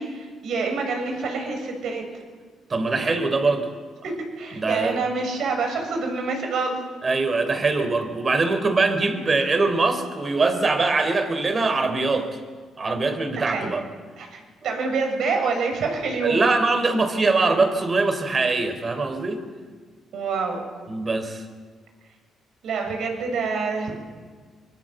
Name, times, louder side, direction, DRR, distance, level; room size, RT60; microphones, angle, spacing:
voice 1, 0.0-2.0 4.4-6.8 13.3-13.7 14.2-16.4 20.1-20.6 22.6-23.9, right 4 dB, 70° right, 3 dB, 7.0 m, -26 dB
voice 2, 2.7-3.7 4.5-5.0 7.0-12.3 12.8-13.8 16.2-19.4 20.9-21.4, right 3 dB, 35° right, 9 dB, 4.0 m, -22 dB
24.5 x 23.5 x 8.0 m, 1.5 s
cardioid pair, 90°, 0 cm